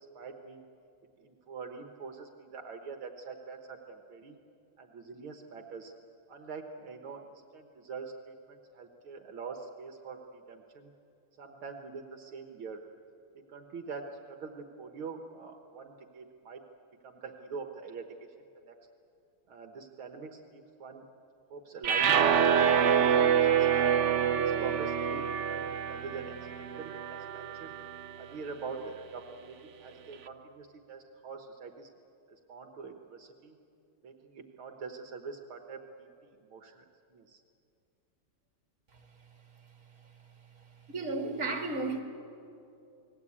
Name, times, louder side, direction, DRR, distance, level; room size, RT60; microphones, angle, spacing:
voice 1, 0.2-0.6 1.2-4.4 4.8-5.9 6.3-10.9 11.4-12.8 13.3-16.6 17.0-18.1 18.7-18.8 19.5-21.1 21.5-23.7 24.3-27.8 28.2-31.9 32.3-33.6 34.0-36.9 37.1-37.4, right 5 dB, 70° right, 4 dB, 2.0 m, -44 dB
sound 1, 21.8-28.1, right 8 dB, 85° right, 0.6 m, -26 dB
voice 2, 40.9-42.0, right 3 dB, 35° right, 3 dB, 3.0 m, -33 dB
29.5 x 20.0 x 8.6 m, 2.7 s
omnidirectional pair, 2.4 m